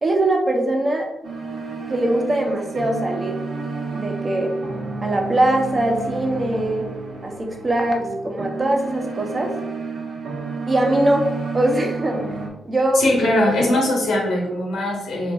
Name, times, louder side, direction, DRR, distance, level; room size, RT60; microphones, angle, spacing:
voice 1, 0.0-1.1 1.9-3.4 3.9-4.5 5.0-6.9 7.2-9.5 10.7-12.2 12.6-13.0 13.7-13.8, right 1 dB, 35° right, 1 dB, 0.8 m, -21 dB
sound 1, 1.2-12.5, right 4 dB, 70° right, 0.7 m, -31 dB
voice 2, 12.9-15.3, left 1 dB, 80° left, -1 dB, 1.1 m, -21 dB
2.9 x 2.5 x 3.5 m, 0.92 s
supercardioid pair, 60°, 0 cm